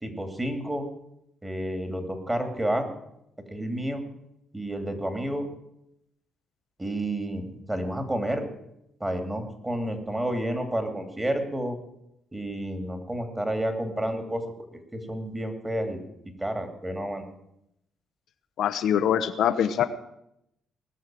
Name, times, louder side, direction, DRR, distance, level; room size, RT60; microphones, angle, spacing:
voice 1, 0.0-0.9 1.4-2.9 3.5-4.0 4.5-5.5 6.8-8.5 9.0-11.8 12.3-14.4 14.9-16.0 16.4-17.2, right 1 dB, 15° right, 6 dB, 2.6 m, -30 dB
voice 2, 18.6-19.9, left 9 dB, 75° left, 8 dB, 0.9 m, -23 dB
19.0 x 6.4 x 7.6 m, 0.80 s
cardioid pair, 90°, 0 cm